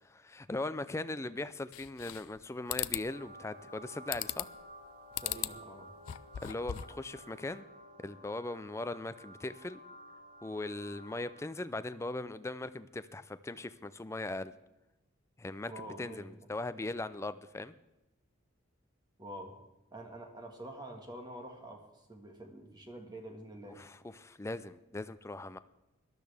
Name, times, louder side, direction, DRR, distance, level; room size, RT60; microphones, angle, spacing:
voice 1, 0.0-4.5 6.4-7.7 8.0-9.8 10.4-14.5 15.4-17.7 23.8-25.6, left 2 dB, 15° left, 13 dB, 0.4 m, -39 dB
sound 1, 1.7-2.4 2.7-3.1 4.1-4.6 5.1-5.6 6.0-7.0, left 14 dB, 85° left, 0.4 m, -37 dB
sound 2, 2.8-11.6, equal, 40° right, 2.7 m, -53 dB
voice 2, 5.2-5.9 15.7-16.5 19.2-19.6 19.9-23.8, right 1 dB, 20° right, 3 dB, 1.6 m, -47 dB
18.5 x 12.0 x 3.4 m, 0.97 s
head